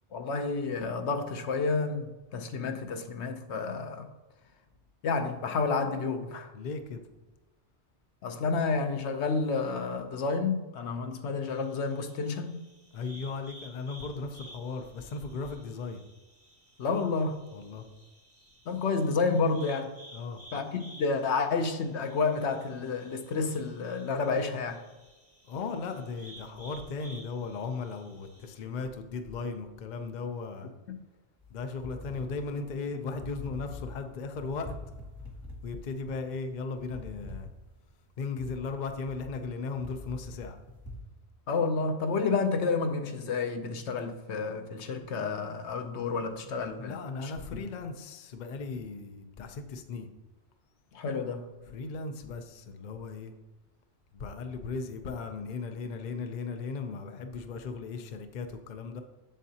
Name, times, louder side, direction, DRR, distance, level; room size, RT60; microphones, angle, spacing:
voice 1, 0.1-4.1 5.0-6.5 8.2-12.6 16.8-17.4 18.7-19.9 20.5-24.8 41.5-47.0 47.2-47.6 50.9-51.5, left 4 dB, 75° left, 0.9 m, -30 dB
voice 2, 6.5-7.0 12.9-16.0 17.5-17.9 20.1-20.4 25.5-30.7 31.5-34.8 35.6-37.5 38.2-40.6 46.8-50.1 51.7-53.3 54.1-59.0, left 4 dB, 50° left, 0.6 m, -37 dB
sound 1, 11.4-28.6, right 1 dB, 10° right, 1.8 m, -55 dB
sound 2, 31.4-41.0, left 2 dB, 20° left, 1.3 m, -45 dB
7.4 x 7.3 x 2.8 m
omnidirectional pair, 1.2 m